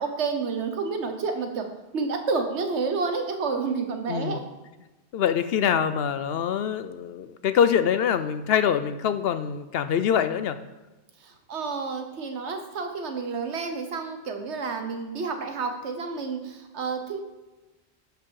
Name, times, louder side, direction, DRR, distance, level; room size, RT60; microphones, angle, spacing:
voice 1, 0.0-1.7 1.9-4.4 11.2-17.2, right 4 dB, 80° right, 6 dB, 1.4 m, -30 dB
voice 2, 4.1-4.4 5.1-10.6, left 8 dB, 65° left, 11 dB, 0.8 m, -24 dB
11.5 x 5.2 x 4.7 m, 1.1 s
omnidirectional pair, 1.1 m